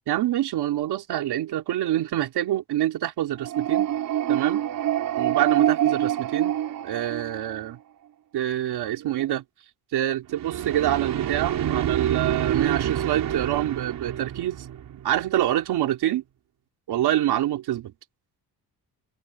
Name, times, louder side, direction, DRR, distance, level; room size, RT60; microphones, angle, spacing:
voice 1, 0.1-3.9 4.3-4.6 5.2-6.6 6.8-7.8 8.3-9.4 9.9-14.7 15.0-16.2 16.9-17.9, right 13 dB, 90° right, 3.6 m, -26 dB
sound 1, 3.4-7.7 10.3-15.3, right 11 dB, 60° right, 3.7 m, -26 dB
cardioid pair, 165°, 38 cm